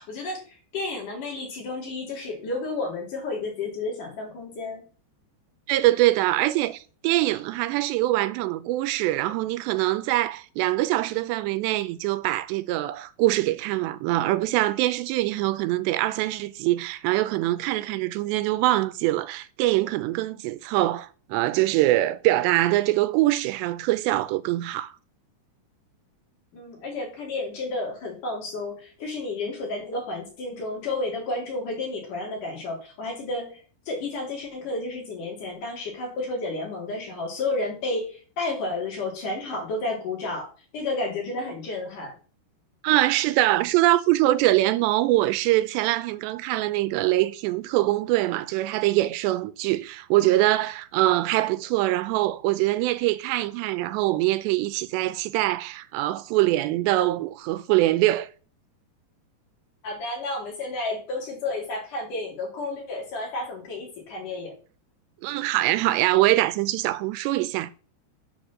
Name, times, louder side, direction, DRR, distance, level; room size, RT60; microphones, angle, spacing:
voice 1, 0.0-4.8 26.5-42.1 59.8-64.5, left 2 dB, 50° left, 4.6 m, -31 dB
voice 2, 5.7-24.9 42.8-58.3 65.2-67.7, right 16 dB, 90° right, 2.8 m, -23 dB
8.5 x 5.2 x 7.3 m
omnidirectional pair, 4.9 m